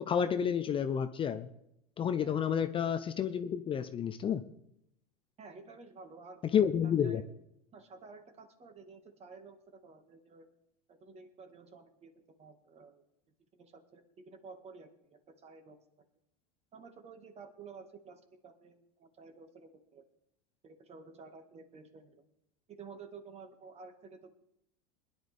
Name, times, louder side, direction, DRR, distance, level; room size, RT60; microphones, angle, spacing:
voice 1, 0.0-1.5 2.0-4.4 6.5-7.2, left 8 dB, 25° left, 10 dB, 0.6 m, -30 dB
voice 2, 5.4-6.4 6.8-7.2 7.7-10.5 10.9-13.0 13.5-15.8 16.7-20.0 20.6-22.1 22.7-24.3, right 4 dB, 30° right, 6 dB, 1.9 m, -52 dB
20.5 x 10.5 x 3.5 m, 0.79 s
hypercardioid pair, 100°, 20 cm